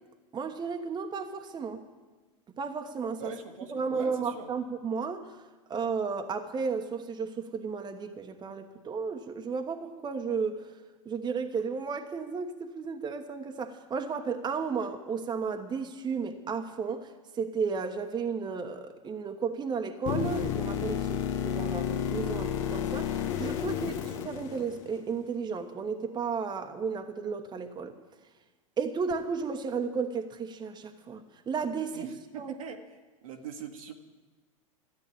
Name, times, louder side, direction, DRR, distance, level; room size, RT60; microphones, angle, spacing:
voice 1, 0.3-1.8 2.6-3.3 3.7-5.3 5.7-10.7 11.0-27.9 28.8-32.1 32.3-32.5, right 5 dB, 25° right, 5 dB, 1.2 m, -33 dB
voice 2, 3.2-4.5 23.6-23.9 31.9-32.8 33.2-33.9, right 6 dB, 75° right, 3 dB, 1.6 m, -42 dB
sound 1, 20.1-25.1 29.1-29.2, left 9 dB, 65° left, 1.2 m, -31 dB
13.5 x 8.7 x 8.6 m, 1.3 s
hypercardioid pair, 90°, 18 cm